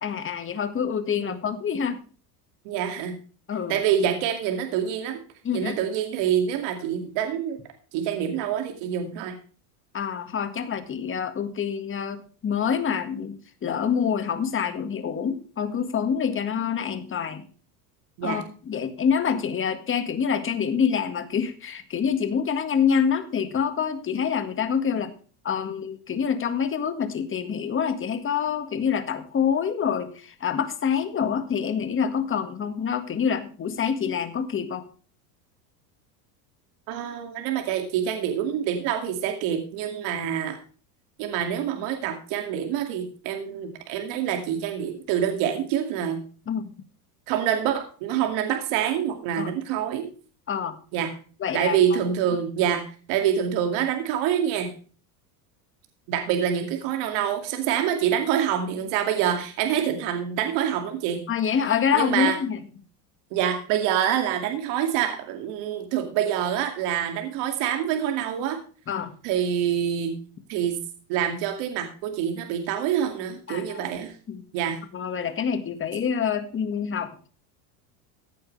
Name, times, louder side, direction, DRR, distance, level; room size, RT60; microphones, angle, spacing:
voice 1, 0.0-2.0 3.5-3.8 5.4-5.8 9.9-17.5 18.2-25.1 25.4-34.8 46.5-46.7 49.4-49.5 50.5-50.8 51.4-51.8 61.3-62.6 68.9-69.1 73.5-73.8 74.3-74.4 74.9-77.3, left 7 dB, 25° left, 9 dB, 1.8 m, -26 dB
voice 2, 2.6-3.2 3.7-5.2 5.5-7.6 7.9-9.3 18.2-18.4 36.9-40.6 41.2-46.2 47.3-50.1 50.9-51.1 51.5-54.7 56.1-61.2 61.9-62.4 63.3-68.6 69.2-70.2 70.5-70.8 71.1-74.1 74.5-74.8, right 9 dB, 65° right, 5 dB, 2.5 m, -26 dB
15.5 x 9.1 x 3.3 m, 0.39 s
supercardioid pair, 135°, 48 cm